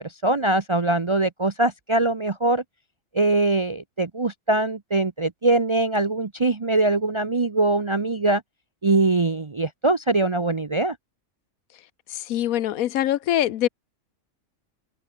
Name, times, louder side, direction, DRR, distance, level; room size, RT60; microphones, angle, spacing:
voice 1, 0.0-2.6 3.1-8.4 8.8-11.0, right 2 dB, 30° right, 0.5 m, -22 dB
voice 2, 12.3-13.7, left 12 dB, 85° left, 1.2 m, -23 dB
open air
omnidirectional pair, 1.4 m